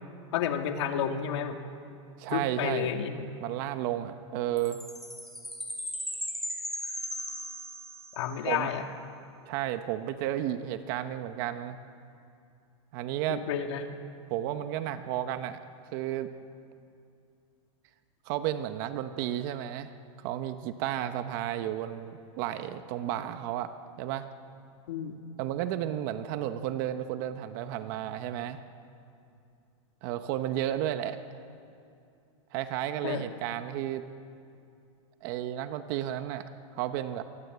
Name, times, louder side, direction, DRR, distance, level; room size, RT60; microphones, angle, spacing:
voice 1, 0.3-1.6 2.3-3.3 8.1-8.9 13.3-13.9 24.9-25.1 33.0-33.3, left 8 dB, 60° left, 5 dB, 2.6 m, -31 dB
voice 2, 2.2-2.9 3.4-4.8 8.4-8.7 9.5-11.8 12.9-13.4 14.3-15.6 15.9-16.3 18.3-19.9 20.2-23.7 24.0-24.3 25.4-28.6 30.0-31.2 32.5-34.0 35.2-36.4 36.8-37.2, right 12 dB, 40° right, 9 dB, 1.1 m, -32 dB
Chime, 4.6-8.3, equal, ahead, 3.2 m, -37 dB
26.5 x 23.5 x 8.2 m, 2.5 s
supercardioid pair, 165°, 16 cm